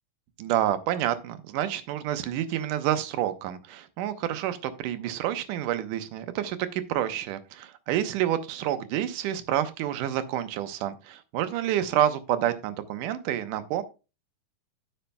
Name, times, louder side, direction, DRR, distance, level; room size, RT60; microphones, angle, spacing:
voice 1, 0.4-13.8, right 11 dB, 75° right, 10 dB, 2.2 m, -28 dB
17.0 x 5.7 x 2.2 m, 0.29 s
omnidirectional pair, 4.0 m